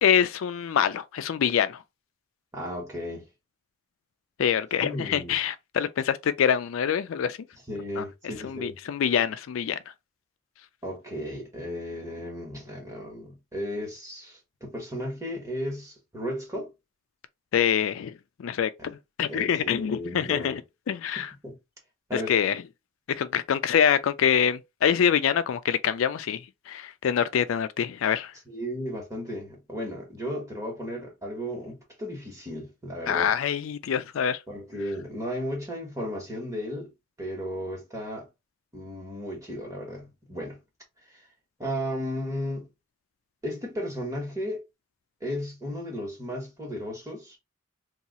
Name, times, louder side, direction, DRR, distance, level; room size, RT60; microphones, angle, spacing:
voice 1, 0.0-1.8 4.4-7.4 8.0-8.1 8.4-9.8 17.5-18.1 18.4-20.6 20.9-21.3 22.1-22.6 23.1-26.4 26.7-28.3 33.1-34.4, left 8 dB, 80° left, 0.3 m, -25 dB
voice 2, 2.5-3.3 4.8-5.4 7.7-8.8 10.8-16.7 18.8-18.9 19.3-20.6 21.2-21.6 22.1-22.3 28.5-33.3 34.5-36.9 37.2-38.3 38.7-40.6 41.1-41.2 41.6-42.7 43.4-44.6 45.2-47.4, equal, 15° right, 1.2 m, -35 dB
2.8 x 2.4 x 4.0 m
head